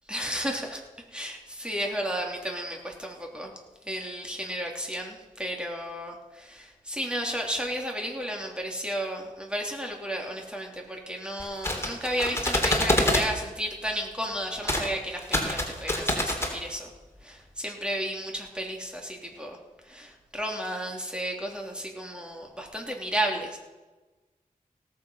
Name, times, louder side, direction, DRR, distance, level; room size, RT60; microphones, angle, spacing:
voice 1, 0.1-0.8 1.1-3.5 3.9-16.9 17.2-19.6 19.9-23.6, equal, 5° right, 0 dB, 3.4 m, -33 dB
sound 1, 11.4-13.3 14.6-14.9 15.2-16.5, left 1 dB, 15° left, 3.3 m, -26 dB
17.5 x 7.6 x 5.7 m, 1.2 s
cardioid pair, 45°, 15 cm